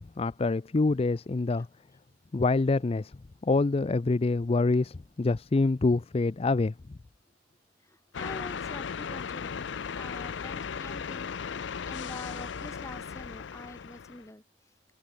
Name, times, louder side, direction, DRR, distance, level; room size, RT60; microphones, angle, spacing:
voice 1, 0.0-1.7 2.3-3.1 3.4-6.7, left 3 dB, 35° left, 0.4 m, -26 dB
voice 2, 7.8-9.7 9.9-14.4, left 1 dB, 15° left, 2.0 m, -46 dB
sound 1, 8.1-14.3, left 6 dB, 90° left, 0.5 m, -36 dB
head